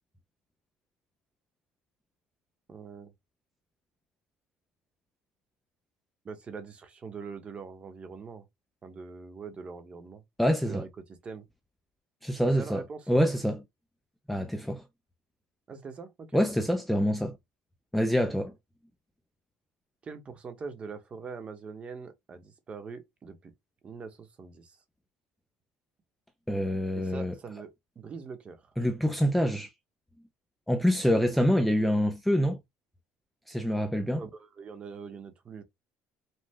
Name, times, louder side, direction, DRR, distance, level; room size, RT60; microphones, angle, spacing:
voice 1, 2.7-3.1 6.2-8.5 8.8-10.2 10.6-11.5 12.6-13.1 15.7-16.6 20.0-23.5 23.8-24.8 26.9-28.7 34.1-35.6, right 5 dB, 25° right, 1.1 m, -43 dB
voice 2, 10.4-10.8 12.2-12.8 13.1-13.6 14.3-14.8 16.3-17.4 17.9-18.5 26.5-27.3 28.8-29.7 30.7-32.6 33.5-34.2, equal, ahead, 0.5 m, -26 dB
5.4 x 2.4 x 3.6 m
cardioid pair, 150°, 4 cm